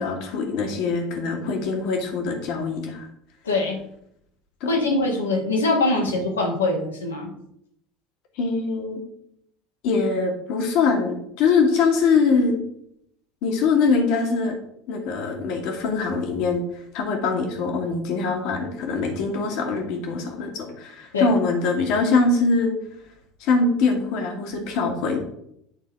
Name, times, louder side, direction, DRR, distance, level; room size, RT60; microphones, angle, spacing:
voice 1, 0.0-3.1 4.6-4.7 8.4-9.0 9.8-12.6 13.4-14.6 14.9-16.6 16.9-22.7 23.4-25.2, left 4 dB, 55° left, 3 dB, 1.6 m, -23 dB
voice 2, 3.4-3.8 4.6-7.3 21.1-21.3, left 2 dB, 80° left, 1 dB, 1.4 m, -23 dB
9.0 x 4.1 x 4.3 m, 0.74 s
figure-of-eight pair, 70°, 0 cm